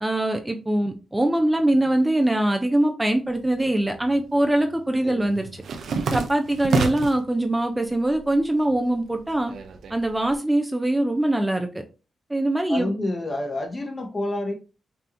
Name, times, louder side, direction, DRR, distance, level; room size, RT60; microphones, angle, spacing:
voice 1, 0.0-5.5 6.1-9.5 9.9-11.7 12.3-12.9, right 1 dB, 15° right, 5 dB, 0.6 m, -22 dB
sound 1, 3.4-4.2 4.5-7.3 7.7-8.4 8.7-10.3, right 4 dB, 80° right, 0.6 m, -29 dB
voice 2, 12.7-14.5, left 2 dB, 35° left, 3 dB, 1.2 m, -28 dB
5.5 x 2.8 x 2.6 m, 0.33 s
cardioid pair, 65°, 0 cm